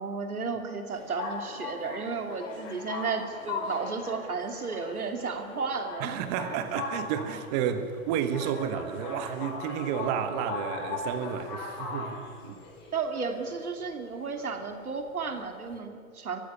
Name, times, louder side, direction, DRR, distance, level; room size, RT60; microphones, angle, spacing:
voice 1, 0.0-6.2 12.9-16.4, right 4 dB, 85° right, 2.8 m, -33 dB
sound 1, 0.9-15.8, left 3 dB, 35° left, 5.5 m, -39 dB
voice 2, 6.0-12.6, right 8 dB, 30° right, 1.5 m, -31 dB
21.5 x 14.5 x 9.6 m
hypercardioid pair, 135°, 43 cm